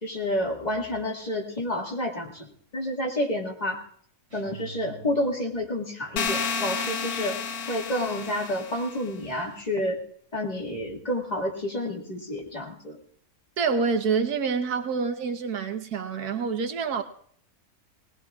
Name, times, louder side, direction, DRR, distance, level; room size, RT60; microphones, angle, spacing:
voice 1, 0.0-3.8 4.3-7.4 7.7-10.0 10.3-13.0, left 1 dB, 25° left, 1.9 m, -29 dB
sound 1, 4.3-5.7, right 4 dB, 50° right, 4.1 m, -46 dB
sound 2, 6.2-9.0, left 6 dB, 75° left, 1.3 m, -31 dB
voice 2, 13.6-17.0, right 5 dB, 85° right, 1.5 m, -27 dB
19.5 x 19.0 x 2.4 m
omnidirectional pair, 1.6 m